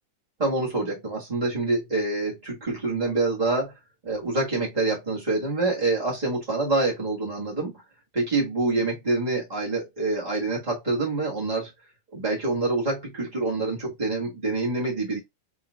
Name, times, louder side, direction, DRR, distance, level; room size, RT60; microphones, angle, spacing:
voice 1, 0.4-3.7 4.0-7.8 8.1-11.7 12.1-15.2, right 3 dB, 20° right, 1.4 m, -26 dB
4.4 x 3.7 x 2.3 m
omnidirectional pair, 2.4 m